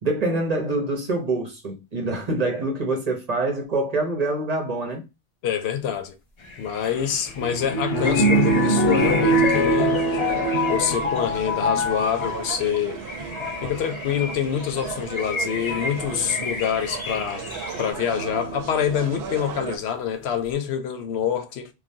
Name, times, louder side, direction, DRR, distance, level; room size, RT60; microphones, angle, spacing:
voice 1, 0.0-5.1, right 2 dB, 45° right, 0.7 m, -25 dB
voice 2, 5.4-6.2 6.6-10.0 10.7-13.0 13.6-17.4 17.8-21.7, left 8 dB, 85° left, 0.8 m, -26 dB
sound 1, 6.4-17.9, left 3 dB, 40° left, 0.4 m, -34 dB
sound 2, 6.8-12.5 13.2-13.7 14.9-15.0 15.7-16.0 18.1-18.8 19.4-19.5 19.7-19.8, equal, 65° left, 1.1 m, -23 dB
sound 3, 7.9-19.8, right 6 dB, 80° right, 0.8 m, -36 dB
3.2 x 2.2 x 2.6 m
omnidirectional pair, 1.1 m